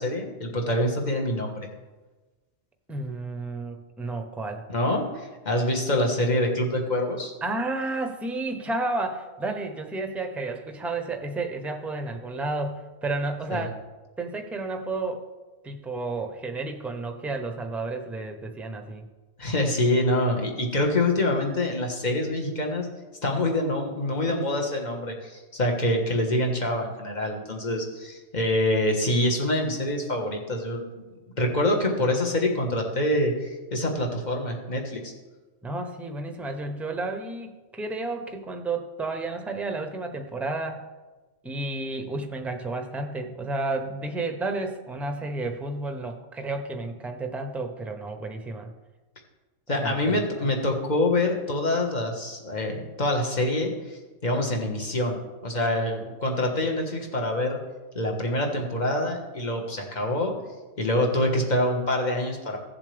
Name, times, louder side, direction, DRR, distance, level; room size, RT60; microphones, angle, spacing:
voice 1, 0.0-1.7 4.7-7.3 13.5-13.6 19.4-22.9 23.2-30.9 31.4-35.1 49.7-57.6 57.9-60.3 60.8-62.6, left 1 dB, 35° left, 1 dB, 1.6 m, -26 dB
voice 2, 2.9-4.6 7.4-13.8 14.2-15.3 15.6-19.0 35.6-40.8 41.4-48.7 49.8-50.5, right 2 dB, ahead, 5 dB, 0.7 m, -31 dB
16.0 x 7.1 x 3.4 m, 1.2 s
omnidirectional pair, 1.3 m